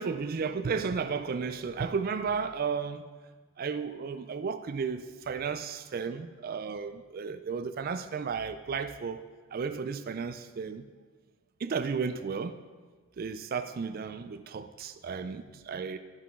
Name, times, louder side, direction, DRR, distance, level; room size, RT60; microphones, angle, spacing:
voice 1, 0.0-3.0 3.6-9.2 9.5-10.9 11.6-12.6 13.2-16.0, right 5 dB, 45° right, 0.3 m, -33 dB
13.5 x 5.7 x 3.7 m
head